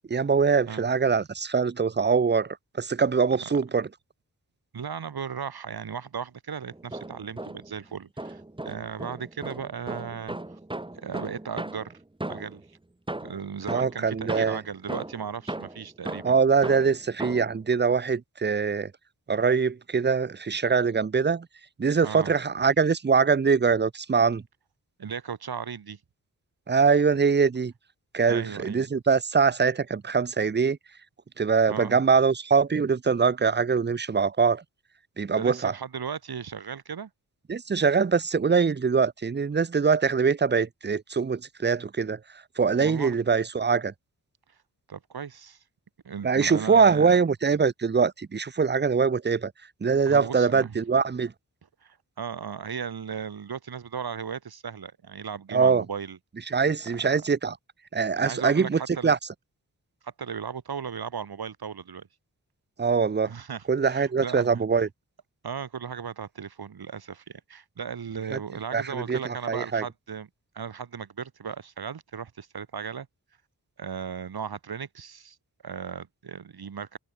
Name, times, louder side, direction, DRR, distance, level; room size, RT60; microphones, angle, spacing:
voice 1, 0.1-3.9 13.7-14.6 16.2-18.9 19.3-21.5 21.8-24.4 26.7-27.7 28.1-30.8 31.4-34.6 35.2-35.7 37.5-42.2 42.6-43.9 46.2-49.5 49.8-51.3 55.5-55.8 56.5-57.5 57.9-59.2 62.8-63.3 63.7-64.9 68.3-68.4 68.7-69.8, right 5 dB, 30° right, 0.7 m, -23 dB
voice 2, 4.7-10.6 10.9-12.0 12.3-12.6 13.2-16.4 22.0-22.3 25.0-26.0 28.3-28.9 31.7-32.0 35.3-37.1 42.8-43.2 44.9-45.6 46.0-47.2 50.1-50.8 51.8-56.2 56.8-57.3 58.1-59.1 60.0-62.1 63.3-64.6 65.4-70.3 70.5-73.1 73.8-75.4 75.6-77.0, right 7 dB, 80° right, 3.7 m, -36 dB
sound 1, 6.7-7.8 8.2-12.7 13.1-17.6, right 2 dB, 15° right, 1.6 m, -37 dB
wide cardioid pair, 90°, 37 cm